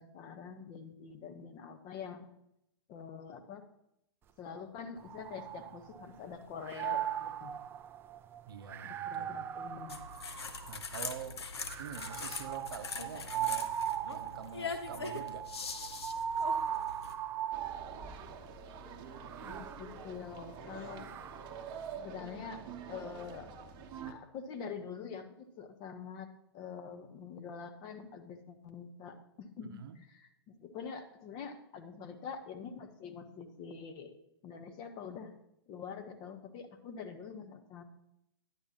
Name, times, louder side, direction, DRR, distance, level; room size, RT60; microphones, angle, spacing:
voice 1, 0.0-2.3 2.9-3.7 4.4-7.6 8.8-10.0 19.4-21.1 22.0-22.6 22.9-23.5 24.1-29.8 30.1-34.1 34.4-35.3 35.7-37.8, left 6 dB, 35° left, 6 dB, 1.1 m, -45 dB
sound 1, 5.0-6.2 6.6-11.0 11.7-18.3 19.1-21.7, right 9 dB, 15° right, 0.3 m, -39 dB
voice 2, 8.5-9.4 10.7-11.5 11.8-13.8 14.1-15.5 29.6-30.0, right 8 dB, 60° right, 10 dB, 0.8 m, -46 dB
sound 2, 9.9-17.1, left 4 dB, 75° left, 0.9 m, -42 dB
sound 3, 17.5-24.1, right 6 dB, 35° right, 0.9 m, -46 dB
10.5 x 9.8 x 2.9 m, 0.79 s
figure-of-eight pair, 110°, 14 cm